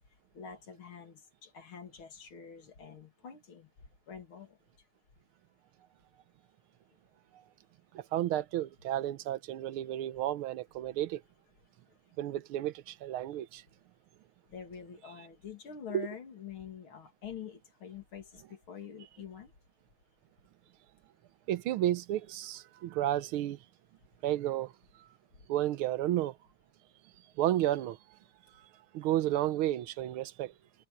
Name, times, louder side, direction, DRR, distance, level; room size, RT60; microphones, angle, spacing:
voice 1, 0.3-3.7 4.1-4.6 11.9-12.0 14.5-19.5, left 7 dB, 75° left, 3.2 m, -46 dB
voice 2, 7.9-11.2 12.2-13.6 15.9-16.1 21.5-23.6 24.2-24.7 25.5-26.4 27.4-28.0 28.9-30.5, right 13 dB, 85° right, 1.6 m, -32 dB
omnidirectional pair, 2.3 m